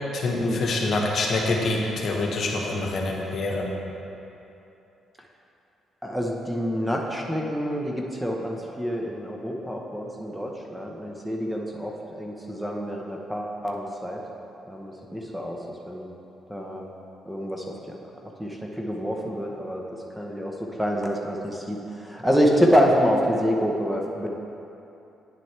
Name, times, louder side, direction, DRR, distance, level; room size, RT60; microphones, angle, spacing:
voice 1, 0.1-3.8, left 2 dB, 55° left, 0 dB, 1.1 m, -26 dB
voice 2, 6.0-14.2 14.7-15.6 15.9-16.1 16.5-16.8 17.2-17.6 18.4-19.8 20.2-24.3, equal, 5° right, 0 dB, 0.9 m, -26 dB
9.4 x 7.6 x 3.3 m, 2.9 s
cardioid pair, 90°, 0 cm